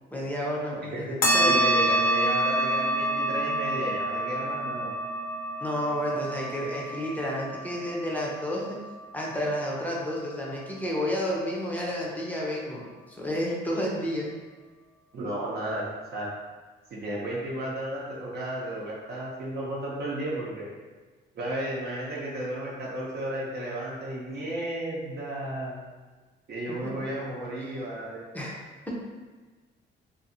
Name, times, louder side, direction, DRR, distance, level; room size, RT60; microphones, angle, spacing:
voice 1, 0.1-1.5 5.6-8.8 9.1-14.3 26.8-26.9 28.3-28.6, equal, 10° left, -4 dB, 0.6 m, -31 dB
sound 1, 1.2-10.1, right 1 dB, 50° left, 0.7 m, -28 dB
voice 2, 1.5-4.9 15.1-15.8 16.1-16.3 16.9-20.7 21.3-25.8 26.5-28.2, right 1 dB, 55° right, -5 dB, 0.7 m, -33 dB
2.6 x 2.5 x 2.7 m, 1.3 s
cardioid pair, 90°, 20 cm